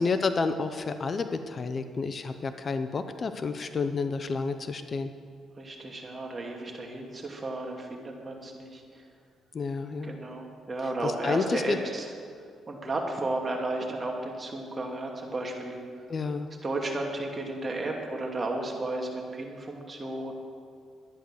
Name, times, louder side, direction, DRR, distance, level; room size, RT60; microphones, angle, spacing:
voice 1, 0.0-5.1 9.5-10.2 11.0-11.8 16.1-16.5, left 4 dB, 40° left, 9 dB, 0.7 m, -30 dB
voice 2, 5.6-9.1 10.0-12.1 12.7-15.8 16.6-20.3, right 2 dB, 30° right, 1 dB, 2.4 m, -33 dB
12.0 x 10.0 x 6.5 m, 2.1 s
cardioid pair, 90°, 0 cm